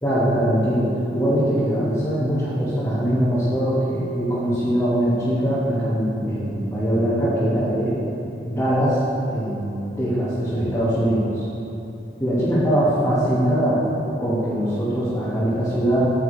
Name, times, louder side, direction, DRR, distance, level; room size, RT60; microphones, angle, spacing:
voice 1, 0.0-8.0 8.4-9.0 9.3-11.5 12.2-13.8 14.2-16.1, equal, 15° left, -12 dB, 1.7 m, -22 dB
9.8 x 7.2 x 3.4 m, 2.9 s
head